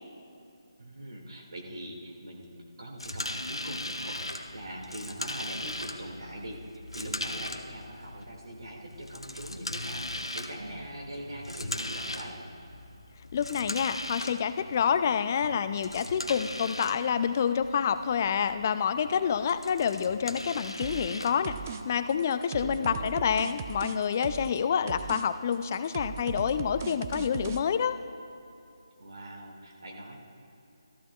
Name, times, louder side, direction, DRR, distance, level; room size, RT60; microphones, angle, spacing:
voice 1, 0.8-12.4 22.6-23.2 29.0-30.2, right 1 dB, 65° right, -1 dB, 2.2 m, -42 dB
sound 1, 3.0-22.1, left 1 dB, 90° left, 0.8 m, -39 dB
voice 2, 13.3-28.0, left 7 dB, 35° left, 12 dB, 0.4 m, -28 dB
sound 2, 20.8-21.2 21.4-21.8 22.1-24.6 24.9-25.2 25.5-27.6, right 8 dB, 30° right, 0.4 m, -38 dB
14.0 x 14.0 x 2.4 m, 2.7 s
figure-of-eight pair, 150°, 3 cm